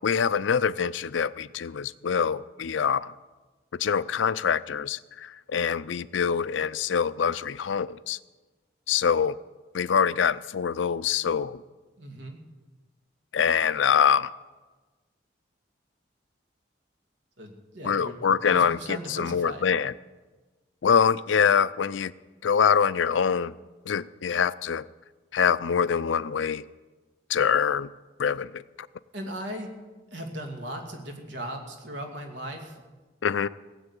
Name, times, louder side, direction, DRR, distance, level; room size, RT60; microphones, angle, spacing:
voice 1, 0.0-3.1 3.7-8.2 8.9-9.3 9.7-11.6 13.3-14.3 17.8-18.8 19.1-19.9 20.8-22.1 22.4-23.5 23.9-24.9 25.3-26.6 27.3-27.9 28.2-28.6 33.2-33.5, left 7 dB, 85° left, 17 dB, 0.5 m, -24 dB
voice 2, 12.0-12.4 17.4-19.6 29.1-29.7 30.1-32.8, right 1 dB, 75° right, 3 dB, 2.5 m, -38 dB
17.0 x 8.0 x 8.2 m, 1.3 s
head